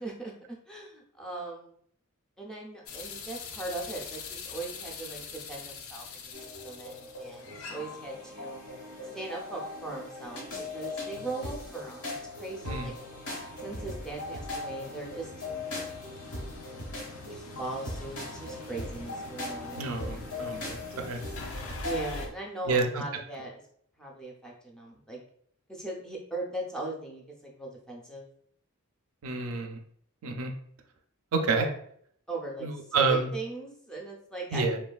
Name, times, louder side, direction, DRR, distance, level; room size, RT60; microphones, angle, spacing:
voice 1, 0.0-1.8 2.4-6.3 6.6-8.6 9.1-10.5 10.7-12.9 13.6-15.3 17.3-19.9 21.8-23.6 24.0-25.2 25.7-28.2 31.5-31.6 32.3-34.8, right 2 dB, 5° left, -2 dB, 0.4 m, -39 dB
sound 1, 2.9-22.3, left 4 dB, 65° left, 0.4 m, -45 dB
sound 2, 6.3-22.3, left 2 dB, 90° left, 1.0 m, -39 dB
voice 2, 19.8-21.2 22.7-22.8 29.2-29.8 30.2-30.5 31.3-31.7 32.6-33.3 34.5-34.8, right 4 dB, 70° right, 4 dB, 0.4 m, -28 dB
3.1 x 2.2 x 2.3 m, 0.65 s
head